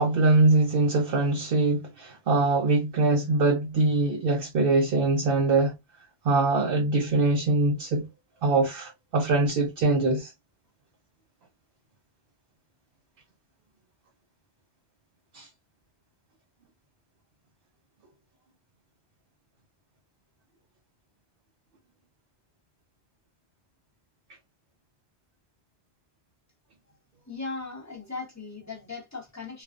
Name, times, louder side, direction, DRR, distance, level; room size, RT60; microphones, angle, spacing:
voice 1, 0.0-5.7 6.2-8.1 8.4-10.3 15.3-15.5, right 3 dB, 65° right, 0.8 m, -23 dB
voice 2, 27.3-29.6, left 3 dB, 15° left, 0.8 m, -38 dB
2.4 x 2.2 x 2.4 m
omnidirectional pair, 1.1 m